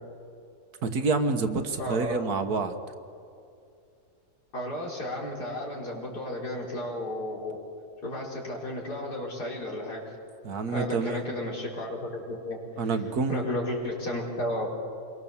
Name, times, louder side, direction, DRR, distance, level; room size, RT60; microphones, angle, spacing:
voice 1, 0.8-2.8 10.4-11.2 12.8-13.5, right 4 dB, 75° right, 7 dB, 1.8 m, -28 dB
voice 2, 1.8-2.2 4.5-7.6 8.0-10.2 10.7-12.9 13.3-14.7, left 1 dB, 90° left, -3 dB, 5.1 m, -33 dB
27.5 x 22.5 x 7.2 m, 2.5 s
omnidirectional pair, 1.6 m